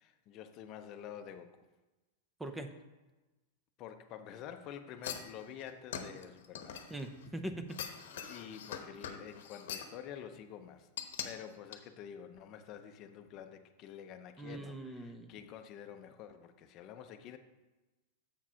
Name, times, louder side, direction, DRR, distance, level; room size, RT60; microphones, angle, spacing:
voice 1, 0.0-1.7 3.8-6.8 8.1-10.9 11.2-17.4, left 9 dB, 40° left, 8 dB, 0.6 m, -48 dB
voice 2, 2.4-2.7 6.9-7.7 14.4-15.3, right 1 dB, 10° right, 8 dB, 0.6 m, -41 dB
sound 1, 5.0-7.3 7.7-10.0 11.0-11.3 11.7-11.8, left 8 dB, 75° left, 0.9 m, -43 dB
7.3 x 4.8 x 5.6 m, 1.1 s
hypercardioid pair, 130°, 0 cm